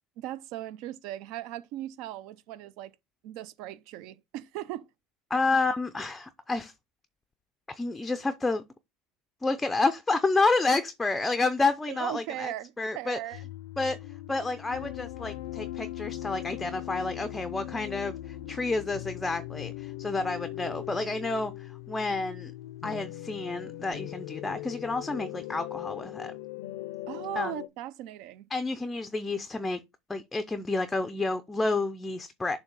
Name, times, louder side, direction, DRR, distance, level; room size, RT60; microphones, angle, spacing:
voice 1, 0.2-2.9 3.2-4.9 11.9-13.5 27.1-28.4, right 14 dB, 65° right, 0.5 m, -38 dB
voice 2, 5.3-6.7 7.7-8.6 9.4-12.5 12.8-13.2 13.8-14.0 14.3-22.5 22.8-26.3 27.4-27.5 28.5-29.8 30.1-32.6, left 3 dB, 10° left, 0.4 m, -29 dB
sound 1, 13.3-27.7, left 15 dB, 85° left, 0.5 m, -39 dB
7.0 x 2.7 x 5.3 m
cardioid pair, 140°, 0 cm